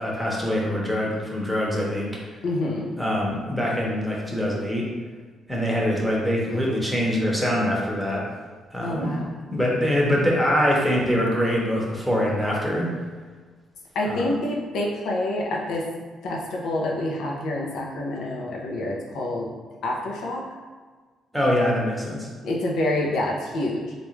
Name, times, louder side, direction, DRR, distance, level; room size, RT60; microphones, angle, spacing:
voice 1, 0.0-2.1 3.0-4.9 5.5-8.3 8.7-9.1 9.5-12.9 14.1-14.4 21.3-22.3, equal, ahead, -4 dB, 0.8 m, -24 dB
voice 2, 2.4-2.9 8.8-9.3 13.9-15.8 16.2-19.5 19.8-20.5 22.4-23.9, left 1 dB, 75° left, -1 dB, 0.6 m, -27 dB
3.3 x 2.5 x 3.1 m, 1.4 s
cardioid pair, 90°, 0 cm